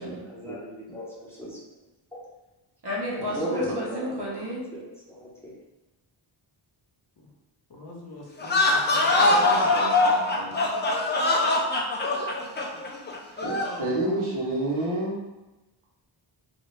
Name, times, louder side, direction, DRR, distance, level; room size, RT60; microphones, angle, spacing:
voice 1, 0.0-1.6 2.1-2.2 3.1-4.3 4.7-5.5, equal, 5° left, -6 dB, 0.8 m, -37 dB
voice 2, 2.8-4.6 9.1-10.8, equal, 55° right, -5 dB, 1.1 m, -33 dB
voice 3, 7.7-9.7, left 2 dB, 55° left, -2 dB, 0.8 m, -45 dB
sound 1, 8.4-13.8, left 2 dB, 25° left, 0.4 m, -23 dB
voice 4, 13.3-15.2, right 1 dB, 80° right, -5 dB, 1.1 m, -29 dB
2.7 x 2.6 x 3.2 m, 1.0 s
wide cardioid pair, 115°, 48 cm